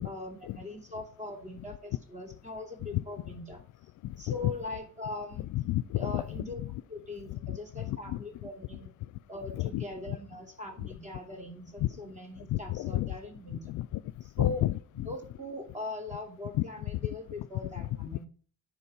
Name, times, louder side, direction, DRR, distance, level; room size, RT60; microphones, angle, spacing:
voice 1, 0.0-3.6 4.2-5.5 5.9-6.6 6.9-8.9 9.3-13.6 14.4-14.7 15.1-18.3, left 2 dB, 25° right, 3.0 m, -41 dB
voice 2, 4.0-4.5 5.4-6.8 7.3-8.8 9.5-10.2 10.8-10.9 11.8-12.0 12.5-13.1 13.5-14.0 14.4-15.1 16.5-16.6 17.6-18.2, left 16 dB, 80° left, 0.5 m, -32 dB
9.9 x 5.0 x 5.9 m
cardioid pair, 90°, 30 cm